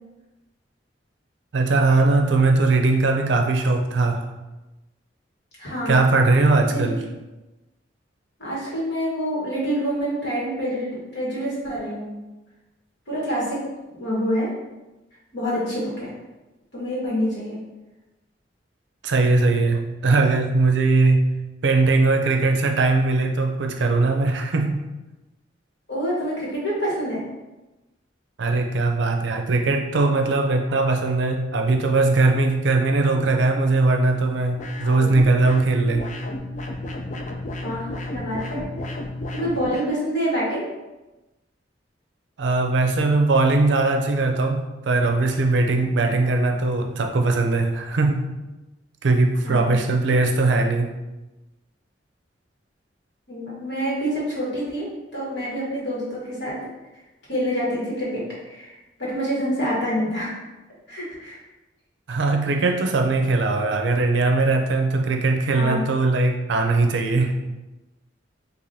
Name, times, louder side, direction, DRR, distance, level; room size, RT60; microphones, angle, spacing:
voice 1, 1.5-4.2 5.9-7.0 19.0-21.3 21.6-24.8 28.4-36.1 42.4-48.3 49.0-50.9 62.1-67.3, right 3 dB, 70° right, 4 dB, 0.5 m, -20 dB
voice 2, 5.6-6.0 6.6-6.9 8.4-12.1 13.1-13.7 14.0-14.5 15.3-16.1 16.7-17.6 25.9-27.2 37.6-38.7 39.3-40.7 49.4-49.8 53.3-56.7 57.3-60.4 60.9-61.4 65.5-65.8, equal, 65° left, -6 dB, 1.4 m, -27 dB
sound 1, 34.6-39.9, left 1 dB, 40° left, 0.4 m, -32 dB
4.7 x 2.5 x 2.7 m, 1.1 s
head